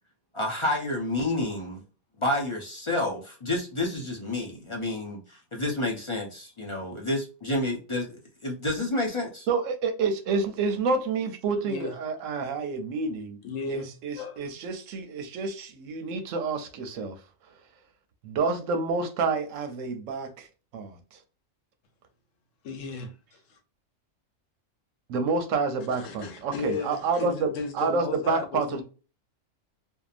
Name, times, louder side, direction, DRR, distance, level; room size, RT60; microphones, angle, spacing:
voice 1, 0.3-1.8 2.2-9.5, left 1 dB, 35° left, 0.5 m, -29 dB
voice 2, 9.5-13.4 13.7-17.2 18.2-20.5 20.7-21.2 25.1-28.8, right 4 dB, 85° right, 1.0 m, -29 dB
voice 3, 13.4-14.5 22.6-23.6 26.0-28.8, left 4 dB, 80° left, 1.1 m, -35 dB
2.7 x 2.2 x 2.4 m
omnidirectional pair, 1.3 m